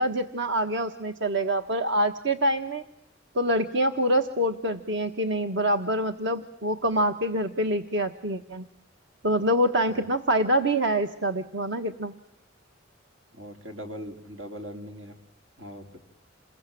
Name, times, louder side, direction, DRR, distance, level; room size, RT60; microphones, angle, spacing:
voice 1, 0.0-2.8 3.3-8.6 9.2-12.1, right 1 dB, 65° right, 6 dB, 1.4 m, -25 dB
voice 2, 13.3-15.1 15.6-16.0, equal, 90° right, 5 dB, 4.3 m, -40 dB
28.5 x 22.0 x 9.2 m, 0.81 s
head